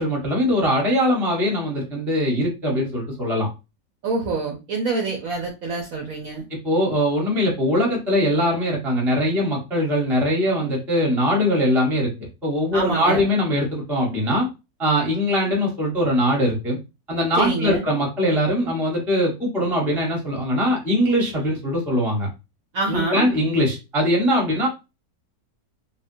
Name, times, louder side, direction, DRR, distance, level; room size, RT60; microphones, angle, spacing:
voice 1, 0.0-3.5 6.5-14.5 14.8-16.8 17.1-22.3 22.9-24.7, equal, ahead, -1 dB, 0.5 m, -21 dB
voice 2, 4.0-6.4 12.7-13.2 17.4-17.8 22.7-23.3, right 3 dB, 65° right, 0 dB, 0.8 m, -26 dB
3.5 x 2.1 x 2.6 m, 0.27 s
omnidirectional pair, 2.0 m